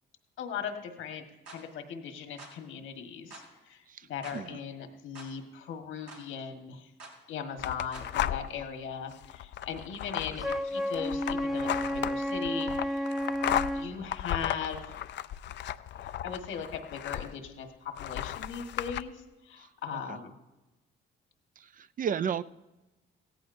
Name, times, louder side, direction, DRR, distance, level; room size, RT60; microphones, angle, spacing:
voice 1, 0.4-6.9 7.3-13.0 13.7-14.8 16.2-20.3, left 7 dB, 85° left, 5 dB, 1.5 m, -39 dB
sound 1, 1.5-1.6 2.4-2.6 3.3-3.5 4.2-4.4 5.2-5.3 6.1-6.3 7.0-7.2 7.9-8.1, right 2 dB, 85° right, 3.7 m, -47 dB
sound 2, 7.6-8.7 9.1-17.5 18.0-19.0, left 11 dB, 65° left, 0.4 m, -35 dB
Wind instrument woodwind instrument, 10.4-13.9, equal, ahead, 0.6 m, -32 dB
voice 2, 21.8-22.4, right 8 dB, 45° right, 15 dB, 0.4 m, -32 dB
17.0 x 14.5 x 2.6 m, 1.0 s
cardioid pair, 90°, 20 cm